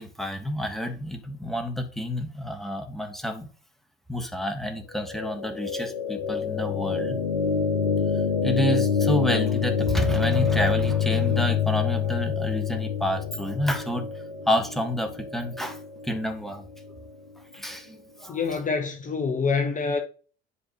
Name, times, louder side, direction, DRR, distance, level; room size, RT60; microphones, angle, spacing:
voice 1, 0.0-3.5 4.1-7.2 8.4-14.1 14.5-16.6 17.5-18.4, equal, ahead, 1.6 m, -29 dB
sound 1, 5.0-17.1, left 7 dB, 80° left, 1.0 m, -26 dB
voice 2, 18.3-20.0, left 4 dB, 25° left, 1.1 m, -26 dB
11.0 x 4.3 x 3.1 m
figure-of-eight pair, 65°, 30 cm